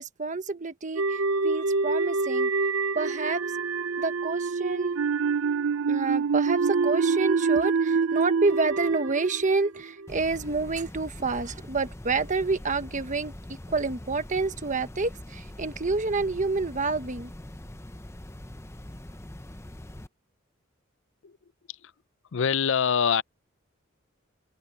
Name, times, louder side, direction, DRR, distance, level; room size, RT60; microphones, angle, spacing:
voice 1, 0.0-2.5 2.9-3.4 4.0-4.9 5.9-17.3, right 3 dB, 40° right, 1.3 m, -28 dB
sound 1, 1.0-10.2, right 4 dB, 70° right, 0.7 m, -26 dB
sound 2, 10.1-20.1, left 1 dB, 15° left, 0.8 m, -43 dB
voice 2, 22.3-23.2, left 7 dB, 65° left, 0.5 m, -25 dB
head